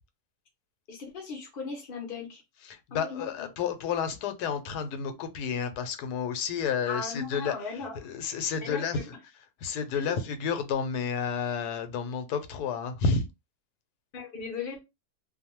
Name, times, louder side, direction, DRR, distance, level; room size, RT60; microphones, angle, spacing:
voice 1, 0.9-2.4 2.9-3.5 6.9-8.0 8.6-9.1 9.9-10.2 14.1-14.8, left 5 dB, 50° left, 0.7 m, -37 dB
voice 2, 2.6-9.0 9.6-13.3, left 6 dB, 90° left, 1.1 m, -31 dB
2.6 x 2.2 x 2.8 m
omnidirectional pair, 1.6 m